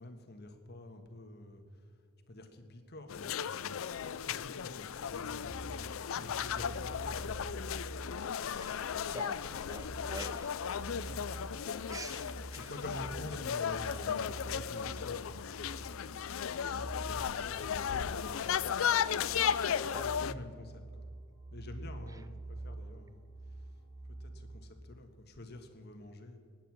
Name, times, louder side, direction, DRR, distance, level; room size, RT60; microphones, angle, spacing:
voice 1, 0.0-1.8 2.3-3.8 4.2-5.8 6.2-7.7 9.0-9.3 9.9-10.1 10.8-11.3 12.5-16.0 16.3-19.3 19.7-21.1 21.5-23.2 24.2-26.4, left 1 dB, 50° left, 1.5 m, -49 dB
sound 1, 3.1-20.3, left 8 dB, 70° left, 0.4 m, -35 dB
sound 2, 5.2-24.6, right 2 dB, 40° right, 3.2 m, -47 dB
voice 2, 8.6-10.5 11.9-12.7 19.8-20.1, right 2 dB, 15° right, 0.6 m, -47 dB
19.5 x 9.1 x 6.2 m
head